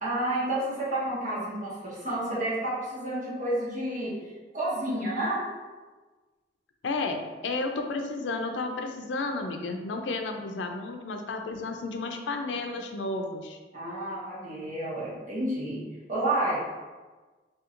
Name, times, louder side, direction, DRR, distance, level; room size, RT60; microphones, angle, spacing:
voice 1, 0.0-4.1 4.5-5.4 13.7-15.8 16.1-16.6, right 1 dB, 45° right, -7 dB, 1.2 m, -30 dB
voice 2, 6.8-13.6, left 3 dB, 80° left, 4 dB, 0.4 m, -32 dB
4.4 x 2.8 x 2.5 m, 1.3 s
head